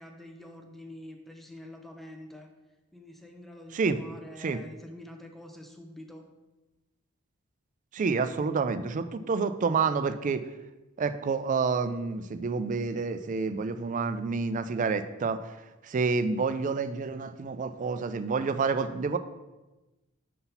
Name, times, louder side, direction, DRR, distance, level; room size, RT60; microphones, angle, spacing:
voice 1, 0.0-2.5 2.9-6.3, left 1 dB, ahead, 3 dB, 0.6 m, -46 dB
voice 2, 7.9-10.4 11.0-15.4 15.8-19.2, right 4 dB, 40° right, 11 dB, 0.3 m, -28 dB
5.5 x 4.0 x 5.6 m, 1.1 s
head